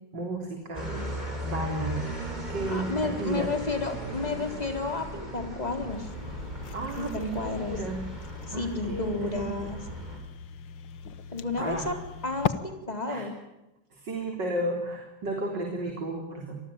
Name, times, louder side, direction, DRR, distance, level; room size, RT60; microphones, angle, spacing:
voice 1, 0.1-1.0 1.4-2.1 2.5-3.5 6.7-8.0 8.5-9.5 11.6-11.8 13.1-13.3 13.9-16.6, right 2 dB, 70° right, 3 dB, 4.3 m, -33 dB
sound 1, 0.7-10.2, right 1 dB, 20° right, 6.3 m, -37 dB
voice 2, 2.7-6.1 7.0-7.8 8.5-9.8 11.3-11.9 12.2-13.3, left 3 dB, 20° left, 5 dB, 4.1 m, -31 dB
sound 2, 5.9-12.5, left 8 dB, 80° left, 1.9 m, -38 dB
27.0 x 20.5 x 8.9 m, 0.94 s
omnidirectional pair, 2.0 m